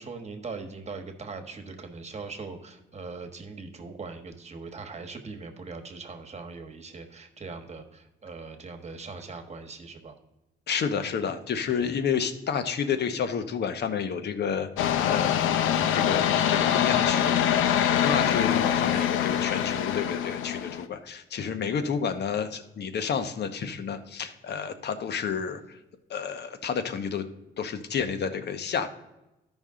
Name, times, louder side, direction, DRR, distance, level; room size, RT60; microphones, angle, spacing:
voice 1, 0.0-10.1 11.7-12.0, right 4 dB, 35° right, 6 dB, 1.3 m, -41 dB
voice 2, 10.7-15.3 15.7-25.8 26.1-27.3 27.6-28.9, left 6 dB, 55° left, 10 dB, 0.9 m, -30 dB
sound 1, 14.8-20.8, left 9 dB, 85° left, 0.6 m, -24 dB
13.0 x 5.4 x 3.7 m, 0.98 s
cardioid pair, 90°, 20 cm